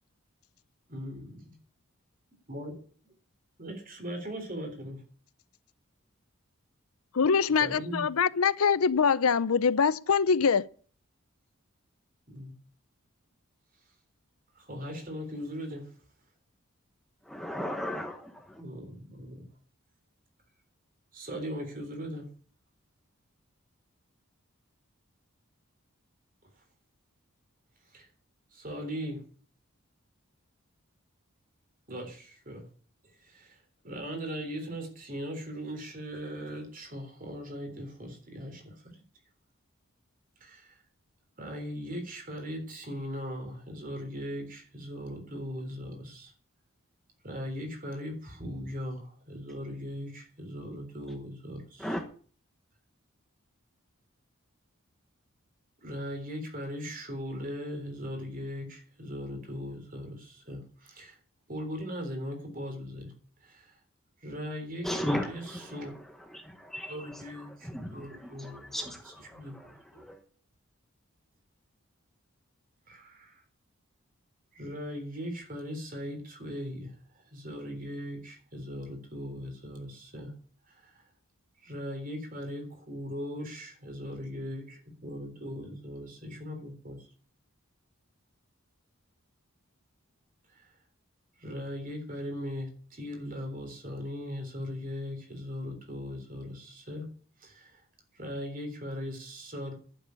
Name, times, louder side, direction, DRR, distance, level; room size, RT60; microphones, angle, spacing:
voice 1, 0.9-1.5 2.5-2.7 3.6-5.0 7.6-8.0 12.3-12.5 14.6-15.9 18.6-19.4 21.1-22.3 27.9-28.1 28.5-29.2 31.9-32.6 33.2-33.6 33.8-38.7 40.4-40.8 41.4-46.3 47.2-51.9 55.8-61.2 61.5-63.1 63.4-63.7 64.2-65.4 65.7-65.9 66.9-68.7 69.3-70.0 72.9-73.4 74.5-76.9 77.3-80.3 80.8-80.9 81.6-87.0 91.4-97.1 97.4-97.8 98.1-99.7, equal, 40° right, 3.6 m, -39 dB
voice 2, 7.2-10.7, left 6 dB, 80° left, 0.6 m, -24 dB
voice 3, 17.2-18.6 51.8-52.0 64.8-70.2, equal, ahead, 1.1 m, -37 dB
11.5 x 7.2 x 9.7 m
head